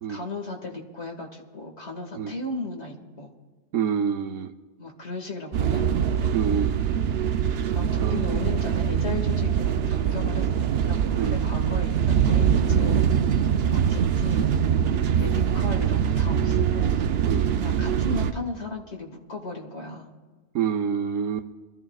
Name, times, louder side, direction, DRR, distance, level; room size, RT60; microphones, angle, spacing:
voice 1, 0.1-3.3 4.8-5.8 7.7-13.0 13.6-14.6 15.2-17.0 17.6-20.1, left 3 dB, 60° left, 2 dB, 2.2 m, -36 dB
voice 2, 3.7-4.5 6.3-6.8 8.0-8.3 11.2-11.4 17.3-17.5 20.5-21.5, right 7 dB, 85° right, 6 dB, 1.1 m, -27 dB
sound 1, 5.5-18.3, right 8 dB, 60° right, 0.8 m, -23 dB
26.0 x 13.5 x 2.3 m, 1.4 s
omnidirectional pair, 1.3 m